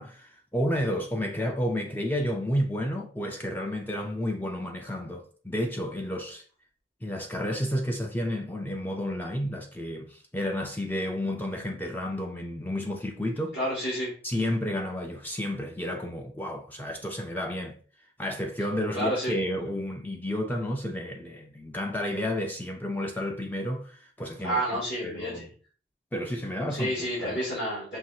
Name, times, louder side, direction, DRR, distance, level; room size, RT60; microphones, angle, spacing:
voice 1, 0.0-6.4 7.0-13.6 14.2-17.8 18.2-24.6 25.0-25.5 26.1-27.4, equal, 10° left, 0.3 m, -31 dB
voice 2, 13.5-14.1 18.9-19.3 24.4-25.5 26.7-28.0, equal, 70° left, 2.1 m, -29 dB
5.7 x 2.6 x 2.7 m
head